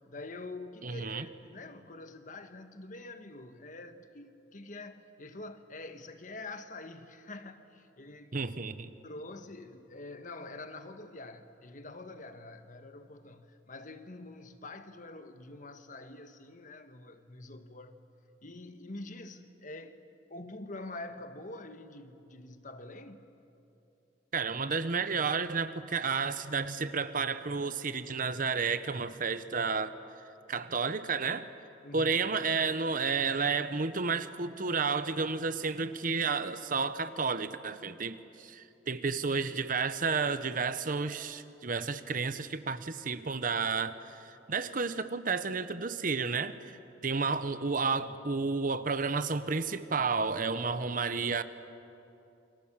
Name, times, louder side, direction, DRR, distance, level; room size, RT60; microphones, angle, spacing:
voice 1, 0.1-8.3 9.0-18.0 18.4-20.0 20.3-23.3 31.8-32.2, left 2 dB, 45° left, 1.4 m, -46 dB
voice 2, 0.8-1.3 8.3-8.9 24.3-29.9 30.5-31.5 31.9-46.8 47.0-51.4, right 4 dB, 45° right, 0.9 m, -31 dB
29.0 x 24.5 x 7.4 m
head